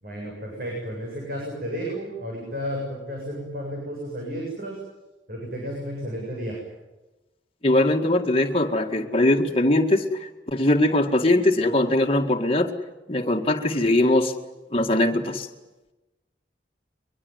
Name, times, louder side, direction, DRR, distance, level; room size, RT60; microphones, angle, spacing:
voice 1, 0.0-4.8 5.3-6.6, equal, 55° right, -2 dB, 7.6 m, -32 dB
voice 2, 7.6-12.7 13.1-14.3 14.7-15.5, left 1 dB, 35° left, 2 dB, 2.0 m, -21 dB
23.5 x 22.5 x 9.5 m, 1.1 s
head